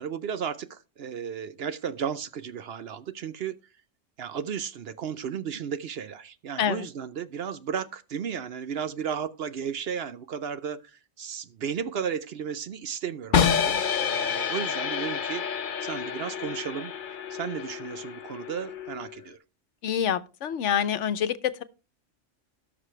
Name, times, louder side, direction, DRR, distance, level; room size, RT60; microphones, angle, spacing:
voice 1, 0.0-3.6 4.2-16.9 17.3-19.4, right 7 dB, 60° right, 0.8 m, -34 dB
sound 1, 13.3-19.3, left 7 dB, 45° left, 0.8 m, -28 dB
voice 2, 19.8-21.6, left 8 dB, 70° left, 1.1 m, -26 dB
17.5 x 6.1 x 3.2 m
omnidirectional pair, 1.3 m